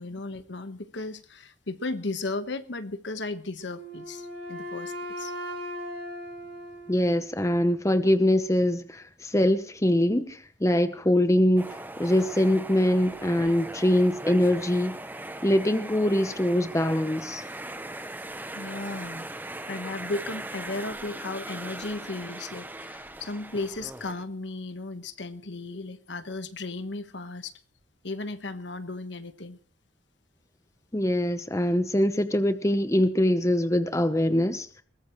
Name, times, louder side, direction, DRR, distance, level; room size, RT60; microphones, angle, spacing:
voice 1, 0.0-5.3 18.5-19.3 19.7-27.5 28.0-29.6, left 2 dB, 70° left, 1.3 m, -35 dB
Wind instrument woodwind instrument, 3.6-7.6, equal, 60° right, 5.6 m, -38 dB
voice 2, 6.9-15.0 15.4-17.4 30.9-34.7, left 1 dB, 15° left, 0.9 m, -23 dB
sound 1, 11.6-24.2, right 1 dB, 10° right, 1.0 m, -39 dB
21.5 x 19.0 x 3.1 m
head